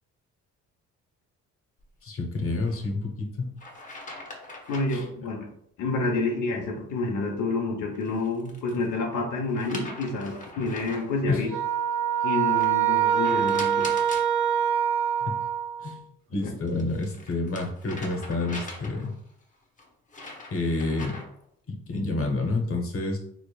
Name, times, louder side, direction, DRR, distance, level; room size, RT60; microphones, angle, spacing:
voice 1, 2.0-3.5 4.9-5.0 11.3-11.5 15.2-15.3 15.8-19.1 20.5-21.2 21.7-23.2, left 2 dB, 45° left, 1 dB, 1.0 m, -29 dB
sound 1, 2.6-2.8 3.6-5.1 7.9-8.9 9.5-11.2 12.6-14.3 16.4-19.2 19.8-21.4, left 2 dB, 25° left, 1.0 m, -42 dB
voice 2, 4.7-5.5 5.8-11.5 12.2-14.1, left 3 dB, 85° left, 1 dB, 0.9 m, -28 dB
sound 2, 11.5-15.9, right 9 dB, 70° right, 0.6 m, -24 dB
3.8 x 3.4 x 2.3 m, 0.69 s
cardioid pair, 90°, 30 cm